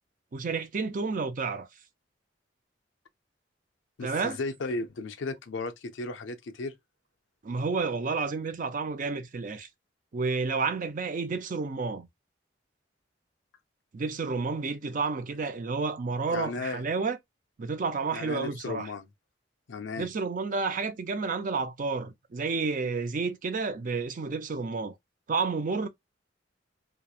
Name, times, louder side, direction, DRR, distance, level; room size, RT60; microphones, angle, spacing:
voice 1, 0.3-1.7 4.0-4.4 7.4-9.7 10.1-12.1 13.9-17.2 17.6-18.9 20.0-24.9 25.3-25.9, right 4 dB, 45° right, 0.4 m, -30 dB
voice 2, 4.0-6.7 16.3-16.8 18.1-19.1 19.7-20.1, left 3 dB, 80° left, 0.5 m, -35 dB
2.9 x 2.0 x 2.3 m
head